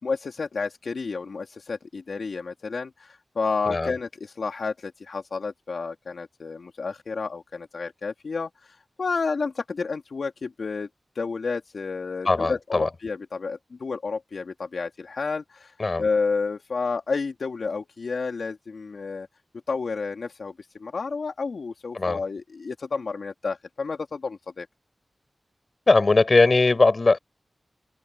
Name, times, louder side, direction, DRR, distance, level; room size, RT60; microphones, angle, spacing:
voice 1, 0.0-10.9 11.1-19.3 19.7-20.5 20.8-24.7, left 4 dB, 80° left, 2.5 m, -30 dB
voice 2, 12.2-12.9 15.8-16.1 21.9-22.2 25.9-27.2, left 3 dB, 50° left, 5.2 m, -20 dB
wide cardioid pair, 65°, 0 cm